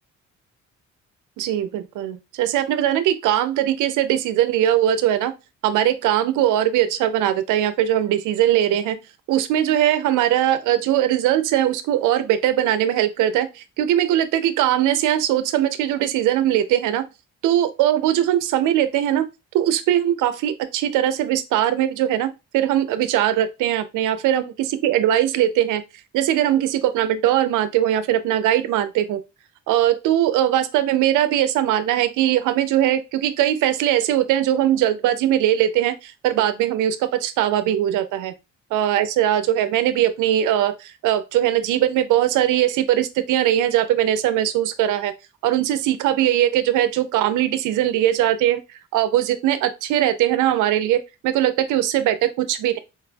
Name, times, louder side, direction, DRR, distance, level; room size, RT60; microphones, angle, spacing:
voice 1, 1.4-5.3 5.6-9.0 9.3-17.0 17.4-19.2 19.5-24.5 24.8-25.8 26.1-29.2 29.7-38.3 38.7-45.1 45.4-48.6 48.9-52.8, right 12 dB, 85° right, 0.5 m, -20 dB
4.4 x 2.4 x 2.2 m
cardioid pair, 90°, 30 cm